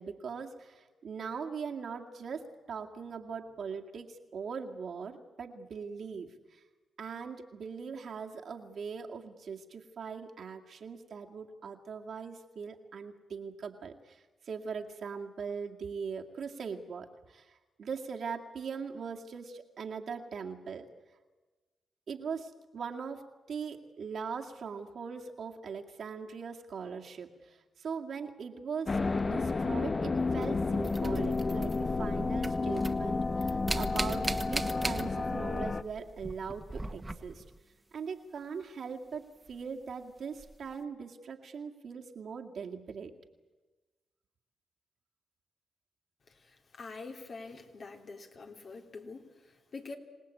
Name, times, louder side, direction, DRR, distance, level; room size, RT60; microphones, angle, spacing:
voice 1, 0.0-6.6 7.0-20.9 22.1-37.4 37.9-43.1, right 6 dB, 65° right, 2 dB, 2.2 m, -41 dB
sound 1, 28.9-35.8, left 3 dB, 40° left, 0.9 m, -31 dB
sound 2, 30.4-32.1 32.3-35.5 35.8-37.6 39.5-39.6 40.4-40.5, right 2 dB, 20° right, 1.5 m, -38 dB
voice 2, 46.3-50.0, left 3 dB, 55° left, 3 dB, 3.1 m, -46 dB
26.5 x 18.0 x 8.5 m, 1.2 s
supercardioid pair, 55°, 0 cm